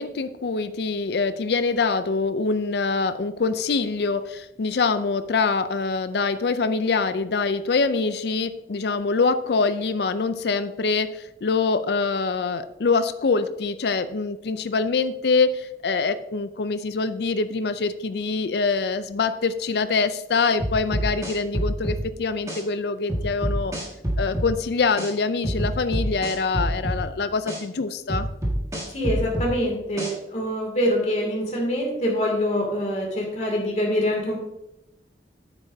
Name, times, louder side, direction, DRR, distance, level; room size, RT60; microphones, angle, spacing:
voice 1, 0.0-23.7 24.2-28.3, left 4 dB, 70° left, 12 dB, 0.5 m, -24 dB
sound 1, 20.6-22.0 22.5-22.6 23.1-24.5 25.0-25.1 25.4-27.0 27.5-27.6 28.1-29.5 30.0-30.1, right 1 dB, 20° right, 1.9 m, -26 dB
voice 2, 28.9-34.3, equal, 40° left, -1 dB, 2.5 m, -25 dB
9.8 x 8.4 x 2.7 m, 0.91 s
head